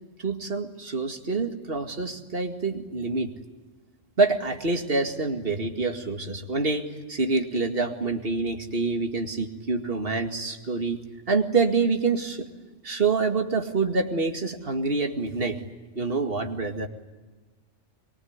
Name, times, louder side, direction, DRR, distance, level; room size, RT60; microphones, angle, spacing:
voice 1, 0.2-3.3 4.2-11.0 11.3-12.5 12.8-15.6 16.0-16.9, right 4 dB, 45° right, 4 dB, 2.4 m, -26 dB
24.5 x 22.5 x 9.6 m, 1.3 s
omnidirectional pair, 1.3 m